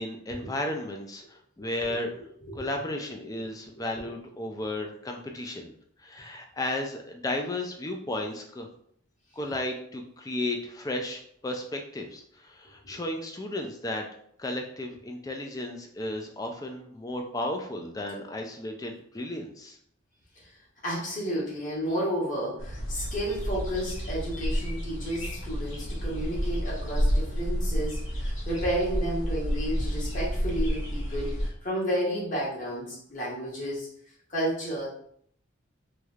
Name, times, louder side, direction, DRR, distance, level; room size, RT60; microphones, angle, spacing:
voice 1, 0.0-2.1 2.5-5.7 6.0-8.7 9.3-14.1 14.4-19.8, left 1 dB, 20° left, 3 dB, 0.3 m, -34 dB
voice 2, 20.8-33.9 34.3-34.9, equal, 40° left, -6 dB, 1.3 m, -31 dB
sound 1, 22.6-31.5, equal, 85° left, 1.3 m, -30 dB
3.2 x 3.1 x 2.4 m, 0.67 s
head